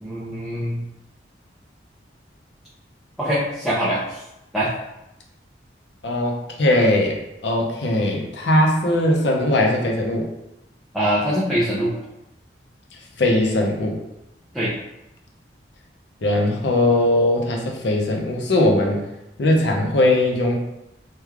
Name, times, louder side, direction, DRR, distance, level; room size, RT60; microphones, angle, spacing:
voice 1, 0.0-0.8 3.2-4.2 4.5-4.7 10.9-11.9 14.5-14.7, equal, ahead, -9 dB, 0.4 m, -23 dB
voice 2, 6.0-10.3 13.2-14.0 16.2-19.0 19.4-20.6, left 1 dB, 70° left, 1 dB, 0.6 m, -20 dB
3.2 x 2.2 x 3.4 m, 0.89 s
head